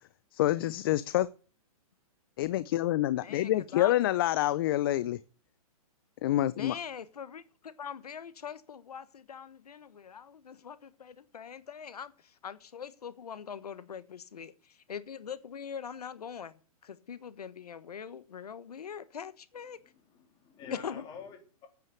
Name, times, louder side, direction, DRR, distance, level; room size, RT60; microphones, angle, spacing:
voice 1, 0.3-1.3 2.4-5.2 6.2-6.8, left 14 dB, 40° left, 0.5 m, -27 dB
voice 2, 3.2-3.9 6.6-19.8 20.8-21.0, left 7 dB, 90° left, 1.3 m, -43 dB
voice 3, 19.7-21.7, left 6 dB, 20° left, 3.3 m, -48 dB
9.2 x 8.8 x 8.2 m
hypercardioid pair, 155°, 19 cm